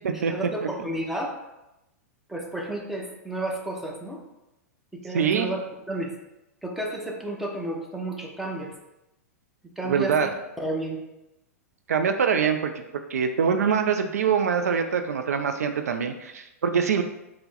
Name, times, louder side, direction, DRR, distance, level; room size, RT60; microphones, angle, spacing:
voice 1, 0.1-1.3 2.3-4.2 4.9-6.1 6.6-8.7 9.8-10.3 10.6-11.0, right 1 dB, ahead, -1 dB, 0.7 m, -32 dB
voice 2, 5.1-5.5 9.9-10.3 11.9-12.7 13.1-17.0, right 6 dB, 75° right, 7 dB, 0.4 m, -24 dB
4.4 x 2.1 x 4.0 m, 0.93 s
hypercardioid pair, 110°, 8 cm